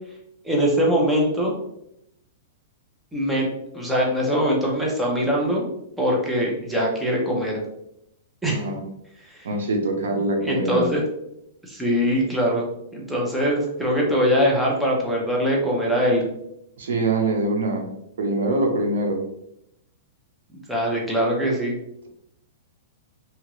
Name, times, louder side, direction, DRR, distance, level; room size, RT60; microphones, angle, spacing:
voice 1, 0.4-1.5 3.1-5.7 6.0-7.6 8.4-8.7 9.2-9.5 10.4-11.0 11.7-12.7 12.9-16.2 20.5-21.7, equal, 5° right, -3 dB, 0.6 m, -22 dB
voice 2, 8.5-8.8 9.4-10.9 16.8-17.9 18.2-19.2, right 2 dB, 90° right, 3 dB, 0.7 m, -24 dB
2.9 x 2.4 x 3.0 m, 0.79 s
supercardioid pair, 165°, 0 cm